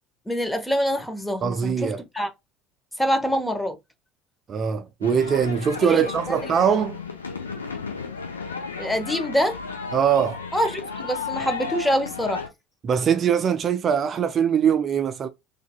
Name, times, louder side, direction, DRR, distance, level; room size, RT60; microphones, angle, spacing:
voice 1, 0.3-2.3 3.0-3.8 5.8-6.4 8.8-9.6 10.5-12.4, equal, 10° left, 1.0 m, -25 dB
voice 2, 1.4-2.0 4.5-7.0 9.9-10.4 12.8-15.3, right 7 dB, 40° right, 0.5 m, -22 dB
sound 1, 5.0-12.5, left 5 dB, 85° left, 0.7 m, -34 dB
3.9 x 3.4 x 2.2 m
figure-of-eight pair, 65°, 0 cm